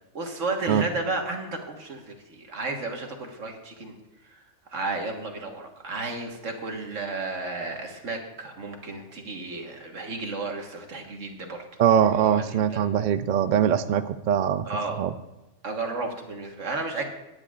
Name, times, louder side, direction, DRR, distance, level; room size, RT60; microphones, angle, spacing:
voice 1, 0.1-4.0 4.3-4.4 4.7-11.6 12.1-12.9 14.7-15.0 15.6-17.1, right 3 dB, 80° right, 3 dB, 1.8 m, -33 dB
voice 2, 11.8-14.7 15.0-15.1, right 9 dB, 65° right, 12 dB, 0.5 m, -22 dB
18.5 x 9.8 x 2.4 m, 1.0 s
omnidirectional pair, 1.3 m